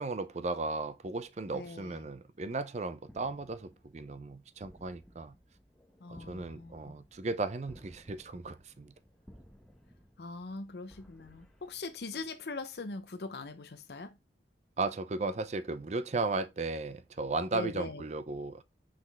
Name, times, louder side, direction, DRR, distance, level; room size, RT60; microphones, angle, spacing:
voice 1, 0.0-5.3 6.1-8.9 14.8-18.6, right 3 dB, 40° right, 0.5 m, -35 dB
voice 2, 1.5-2.1 6.0-6.9 10.2-14.2 17.5-18.0, left 3 dB, 65° left, 0.6 m, -41 dB
sound 1, 3.0-12.5, equal, 5° left, 0.9 m, -59 dB
5.9 x 5.1 x 3.4 m
head